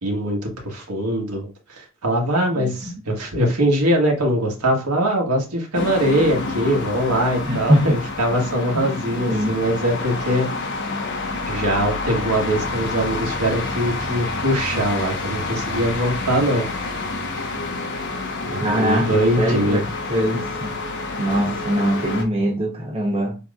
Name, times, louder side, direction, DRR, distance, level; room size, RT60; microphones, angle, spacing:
voice 1, 0.0-10.5 11.5-16.7 18.5-19.8, equal, 90° right, 1.5 m, -22 dB
sound 1, 5.7-22.2, left 3 dB, 55° left, 1.1 m, -28 dB
voice 2, 7.5-7.9 8.7-8.9 9.3-9.5 18.6-19.8 20.1-20.8 21.2-23.4, equal, 25° right, 1.0 m, -22 dB
7.0 x 3.0 x 2.4 m
head